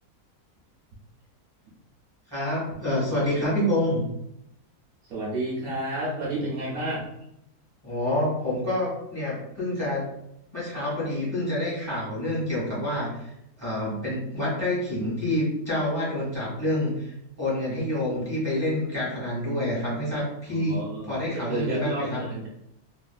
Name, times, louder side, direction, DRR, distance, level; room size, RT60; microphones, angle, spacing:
voice 1, 2.3-4.0 7.8-10.1 10.5-17.1 17.4-20.8 21.1-22.2, left 1 dB, 15° right, -8 dB, 1.4 m, -27 dB
voice 2, 5.0-7.1 20.5-22.5, right 1 dB, 70° right, -6 dB, 1.2 m, -31 dB
3.2 x 2.5 x 2.3 m, 0.79 s
omnidirectional pair, 1.6 m